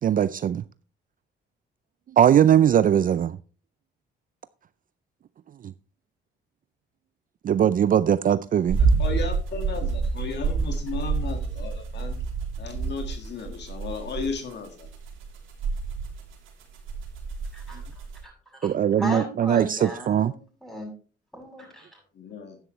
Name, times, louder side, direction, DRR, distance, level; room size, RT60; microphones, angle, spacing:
voice 1, 0.0-0.6 2.2-3.4 5.6-5.7 7.4-8.8 18.6-20.3, right 9 dB, 45° right, 0.4 m, -20 dB
sound 1, 8.7-18.2, right 4 dB, 90° right, 3.2 m, -28 dB
voice 2, 9.0-12.2 12.6-14.9 22.1-22.6, left 5 dB, 60° left, 1.8 m, -35 dB
voice 3, 18.2-18.7 19.0-20.9 21.3-22.0, equal, ahead, 6.9 m, -36 dB
11.0 x 10.0 x 3.1 m
cardioid pair, 90°, 20 cm